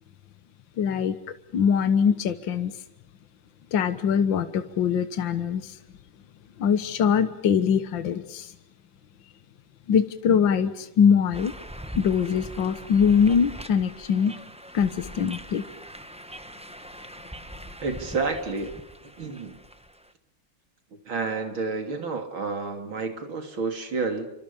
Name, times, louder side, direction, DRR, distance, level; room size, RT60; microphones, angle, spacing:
voice 1, 0.8-1.2 1.5-2.7 3.7-5.8 6.6-8.5 9.9-11.5 12.0-14.4 14.7-15.7, left 7 dB, 70° left, 10 dB, 2.0 m, -22 dB
sound 1, 11.3-20.1, equal, 5° right, 1.1 m, -42 dB
voice 2, 17.8-18.8 19.2-19.6 21.1-24.3, right 4 dB, 80° right, 6 dB, 3.9 m, -30 dB
29.0 x 25.5 x 7.0 m, 0.77 s
omnidirectional pair, 2.2 m